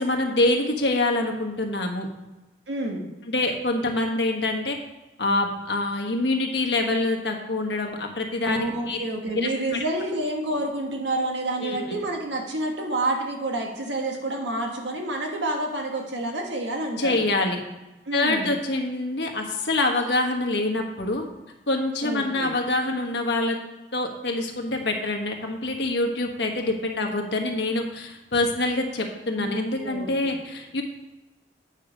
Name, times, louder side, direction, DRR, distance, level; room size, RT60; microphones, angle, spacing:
voice 1, 0.0-2.1 3.3-4.8 5.2-9.0 9.3-9.5 11.6-11.9 17.0-17.6 18.1-21.2 21.7-23.6 23.9-30.8, left 2 dB, 75° left, 3 dB, 1.4 m, -25 dB
voice 2, 2.7-3.1 8.5-17.3 18.1-18.5 22.0-22.5 29.3-30.4, right 2 dB, 90° right, 2 dB, 1.6 m, -29 dB
9.3 x 5.6 x 5.1 m, 1.1 s
head